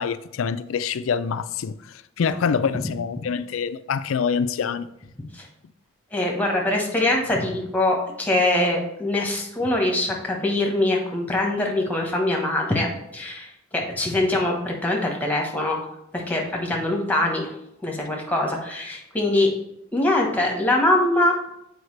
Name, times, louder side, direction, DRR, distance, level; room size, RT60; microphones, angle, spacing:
voice 1, 0.0-1.8 2.2-4.9, left 6 dB, 70° left, 0.4 m, -25 dB
voice 2, 6.1-15.8 16.1-17.4 17.8-19.5 19.9-21.5, left 1 dB, 10° left, 1.1 m, -23 dB
7.9 x 4.7 x 3.3 m
head